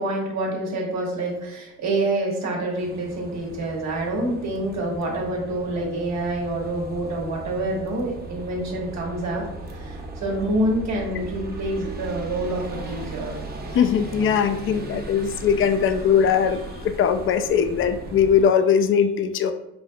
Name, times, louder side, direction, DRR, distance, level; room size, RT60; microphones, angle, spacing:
voice 1, 0.0-9.4 9.7-13.3, right 1 dB, 65° right, -2 dB, 1.4 m, -27 dB
sound 1, 2.7-18.5, right 2 dB, 30° right, 0.7 m, -37 dB
voice 2, 13.7-19.5, left 7 dB, 45° left, 9 dB, 0.4 m, -20 dB
5.1 x 2.7 x 2.3 m, 0.90 s
cardioid pair, 90°, 30 cm